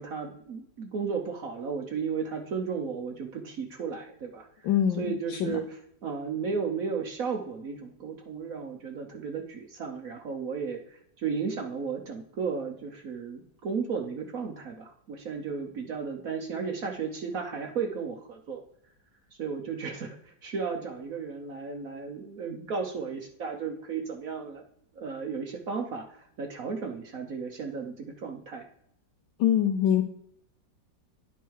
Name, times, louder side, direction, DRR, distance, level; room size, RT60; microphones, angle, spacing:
voice 1, 0.0-4.5 5.0-5.6 6.0-18.6 19.4-24.6 24.9-28.6, right 5 dB, 55° right, 3 dB, 1.1 m, -34 dB
voice 2, 4.6-5.6 29.4-30.0, left 10 dB, 85° left, 4 dB, 1.4 m, -24 dB
10.0 x 4.5 x 4.6 m, 0.71 s
omnidirectional pair, 2.0 m